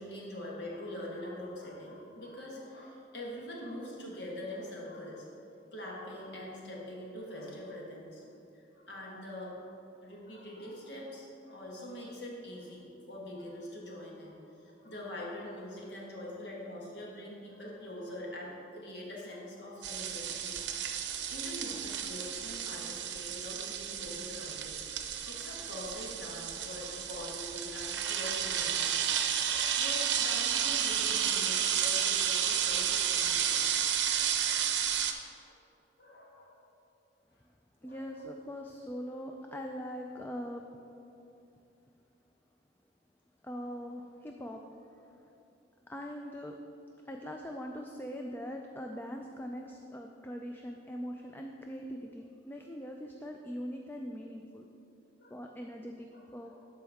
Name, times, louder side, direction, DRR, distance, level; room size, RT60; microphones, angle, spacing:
voice 1, 0.0-5.3 5.7-8.3 8.5-29.0 29.3-33.8 34.1-34.6 36.0-36.6 37.8-38.0 55.2-55.3 56.1-56.6, left 1 dB, 75° left, -3 dB, 1.6 m, -44 dB
sound 1, 19.8-35.1, right 9 dB, 85° right, 0.6 m, -32 dB
voice 2, 37.8-40.7 43.4-45.3 45.9-46.6 47.0-54.7 55.3-56.6, equal, 10° left, 2 dB, 0.3 m, -42 dB
12.5 x 4.6 x 3.5 m, 2.8 s
head